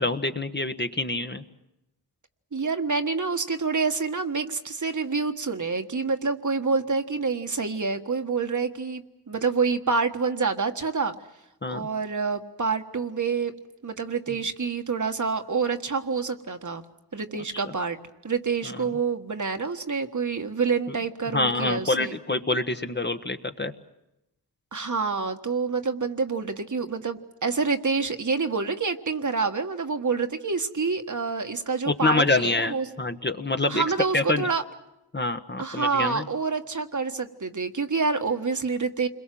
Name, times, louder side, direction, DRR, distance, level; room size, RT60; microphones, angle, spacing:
voice 1, 0.0-1.4 11.6-11.9 17.5-17.6 18.6-18.8 21.3-23.7 31.9-33.8 34.1-34.5 35.1-36.2, left 2 dB, 25° left, 7 dB, 1.3 m, -26 dB
voice 2, 2.5-11.1 11.7-13.5 13.8-16.8 17.1-18.0 18.2-22.1 24.7-32.9 33.7-34.6 35.6-39.1, right 4 dB, 50° right, 6 dB, 1.6 m, -27 dB
29.0 x 22.0 x 7.7 m, 0.90 s
wide cardioid pair, 80°, 39 cm